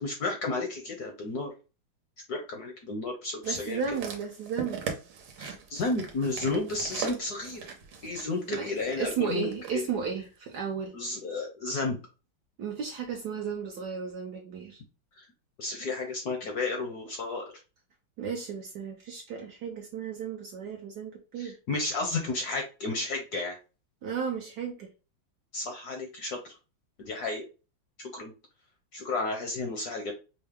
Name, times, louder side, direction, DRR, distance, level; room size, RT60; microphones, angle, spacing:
voice 1, 0.0-1.5 2.3-3.8 5.4-7.6 8.0-9.8 10.9-12.0 15.1-15.3 15.6-17.4 21.4-23.6 25.5-26.5 27.0-27.5 28.0-28.3 28.9-30.1, left 3 dB, 65° left, 0.9 m, -32 dB
voice 2, 3.4-4.8 8.5-10.9 12.6-14.8 18.2-21.6 24.0-24.9, right 7 dB, 70° right, 1.0 m, -34 dB
sound 1, 3.4-9.8 10.5-10.6, right 6 dB, 90° right, 1.7 m, -40 dB
5.3 x 2.0 x 3.4 m
omnidirectional pair, 2.3 m